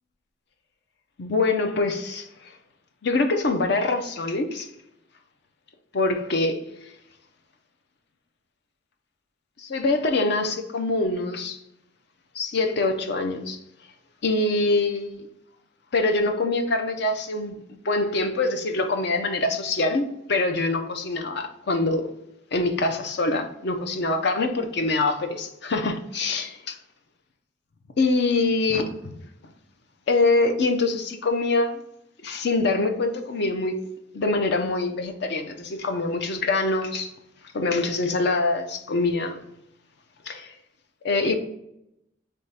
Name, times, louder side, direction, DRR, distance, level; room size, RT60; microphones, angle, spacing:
voice 1, 1.2-2.3 3.0-4.7 5.9-6.6 9.6-11.6 12.4-13.6 14.2-15.3 15.9-22.1 22.5-26.8 28.0-29.1 30.1-31.8 32.2-33.8 34.1-37.1 37.5-39.4 40.3-40.6 41.0-41.4, left 3 dB, 60° left, 0.6 m, -24 dB
3.5 x 3.3 x 4.2 m
head